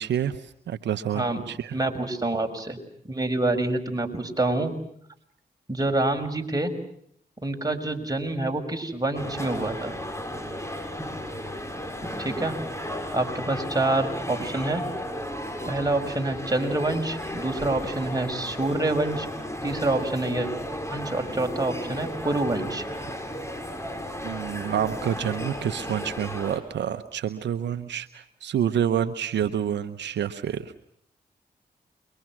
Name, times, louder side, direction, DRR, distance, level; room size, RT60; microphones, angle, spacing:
voice 1, 0.0-1.8 24.2-30.8, right 9 dB, 85° right, 11 dB, 0.9 m, -28 dB
voice 2, 1.7-2.8 3.1-4.7 5.7-6.7 7.4-10.0 12.2-12.6 13.1-14.8 15.7-19.3 19.6-20.5 20.9-22.8, right 2 dB, 20° right, 3 dB, 6.2 m, -27 dB
sound 1, 9.1-26.6, equal, 15° left, 6.6 m, -34 dB
30.0 x 23.5 x 6.2 m, 0.67 s
supercardioid pair, 40°, 18 cm